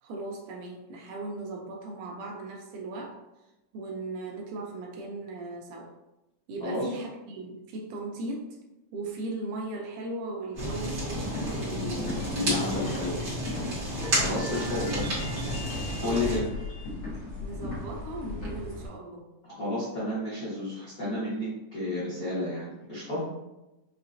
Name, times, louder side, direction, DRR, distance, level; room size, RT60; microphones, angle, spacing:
voice 1, 0.0-3.2 3.7-5.9 6.5-8.6 8.9-12.8 16.0-16.4 17.4-19.3, right 2 dB, 80° right, 0 dB, 2.0 m, -38 dB
sound 1, 10.5-18.9, left 2 dB, 50° left, 1.2 m, -38 dB
Fire, 10.6-16.4, equal, 45° right, 1.5 m, -32 dB
voice 2, 11.7-13.2 14.1-15.0 16.0-16.4 19.6-23.3, left 2 dB, 90° left, -11 dB, 0.7 m, -31 dB
sound 2, 12.2-17.0, left 2 dB, 70° left, 2.8 m, -45 dB
5.7 x 2.4 x 2.6 m, 0.98 s
omnidirectional pair, 3.9 m